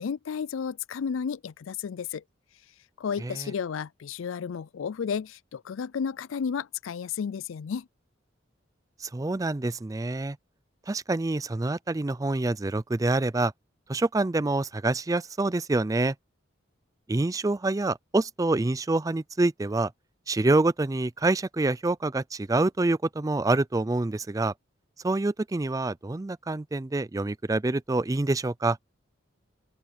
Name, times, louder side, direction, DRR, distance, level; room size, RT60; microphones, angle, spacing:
voice 1, 0.0-2.2 3.0-7.9, left 6 dB, 80° left, 0.4 m, -32 dB
voice 2, 3.2-3.5 9.0-10.4 10.9-13.5 13.9-16.1 17.1-19.9 20.3-24.5 25.0-28.8, right 2 dB, 15° right, 0.4 m, -26 dB
open air
head